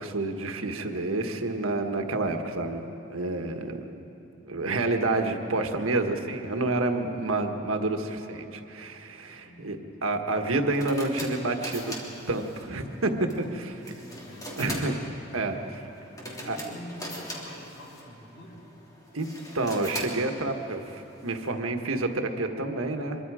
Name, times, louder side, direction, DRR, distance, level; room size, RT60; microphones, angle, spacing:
voice 1, 0.0-3.8 4.4-11.9 12.3-13.1 13.4-13.5 14.6-14.9 15.3-15.8 16.4-16.6 19.1-19.3 19.5-23.2, right 2 dB, 90° right, 5 dB, 1.5 m, -29 dB
voice 2, 9.3-10.1 13.3-13.4 13.8-15.0 16.0-18.6, left 1 dB, 55° left, -1 dB, 4.6 m, -46 dB
sound 1, 10.3-21.5, equal, 20° left, 3.0 m, -42 dB
24.5 x 23.5 x 4.9 m, 2.9 s
head